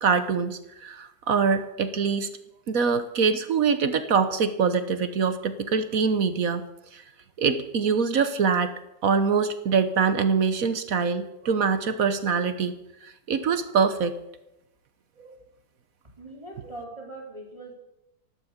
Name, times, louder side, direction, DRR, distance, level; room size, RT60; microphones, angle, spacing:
voice 1, 0.0-2.3 2.7-6.6 6.9-7.0 7.4-8.7 9.0-12.8 13.0-14.2 15.2-15.4, right 5 dB, 55° right, 10 dB, 1.2 m, -24 dB
voice 2, 16.2-17.7, right 2 dB, 15° right, -3 dB, 4.3 m, -41 dB
14.0 x 12.0 x 6.7 m, 0.89 s
omnidirectional pair, 2.0 m